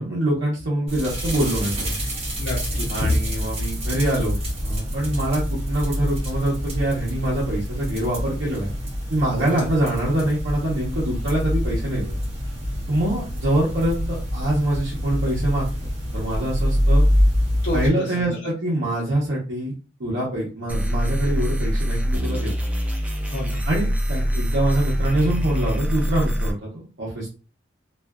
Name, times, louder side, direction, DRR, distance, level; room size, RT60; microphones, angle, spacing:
voice 1, 0.0-2.0 2.9-8.7 9.1-12.2 12.9-15.7 16.1-17.0 17.7-19.7 20.0-22.5 23.6-27.3, right 1 dB, 70° right, -7 dB, 0.8 m, -24 dB
sound 1, 0.9-17.9, equal, 30° right, 0.8 m, -26 dB
voice 2, 2.4-3.1 9.5-9.7 17.6-18.4 23.2-23.6, left 2 dB, 60° left, -5 dB, 0.7 m, -28 dB
sound 2, 20.7-26.5, equal, 5° right, 0.3 m, -24 dB
2.5 x 2.3 x 2.2 m, 0.35 s
head